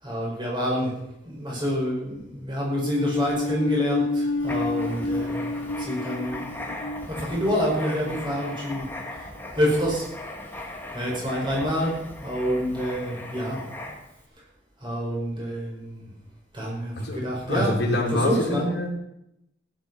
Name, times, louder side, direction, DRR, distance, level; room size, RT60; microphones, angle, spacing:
voice 1, 0.0-0.9 1.2-5.5 5.8-6.4 7.1-8.8 9.5-10.0 10.9-13.6 14.8-16.1 16.5-17.7 18.1-18.7, equal, 25° right, -3 dB, 6.0 m, -27 dB
sound 1, 2.8-9.2, left 2 dB, 90° left, 0.8 m, -30 dB
Writing, 4.4-14.2, left 2 dB, 10° left, 1.9 m, -38 dB
voice 2, 17.5-18.9, left 1 dB, 65° left, -2 dB, 3.4 m, -25 dB
15.5 x 11.0 x 5.8 m, 0.81 s
head